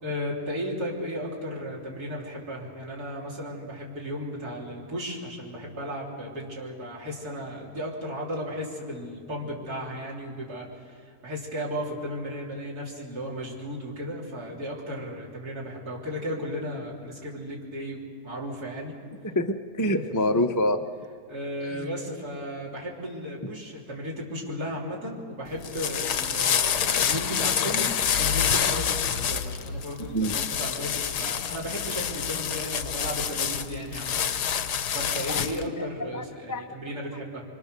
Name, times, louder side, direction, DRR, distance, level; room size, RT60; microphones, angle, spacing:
voice 1, 0.0-18.9 21.3-34.2 34.9-37.4, equal, 70° right, -4 dB, 4.4 m, -35 dB
voice 2, 19.2-20.8 21.7-21.9 30.1-30.3 35.3-35.4 35.8-35.9 36.1-36.7, left 1 dB, 20° left, 6 dB, 0.5 m, -26 dB
sound 1, 25.5-35.7, left 8 dB, 80° left, 1.5 m, -27 dB
27.5 x 25.5 x 6.8 m, 2.1 s
omnidirectional pair, 1.7 m